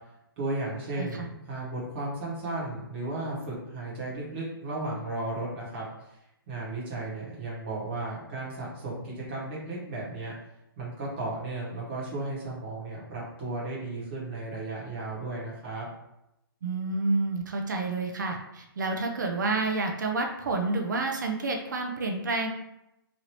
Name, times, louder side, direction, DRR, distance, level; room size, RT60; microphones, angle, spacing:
voice 1, 0.4-6.2 6.5-10.3 10.8-15.9, right 2 dB, 30° right, -8 dB, 1.1 m, -34 dB
voice 2, 16.6-22.5, right 3 dB, 50° right, 2 dB, 0.4 m, -29 dB
3.1 x 2.6 x 2.9 m, 0.87 s
hypercardioid pair, 175°, 13 cm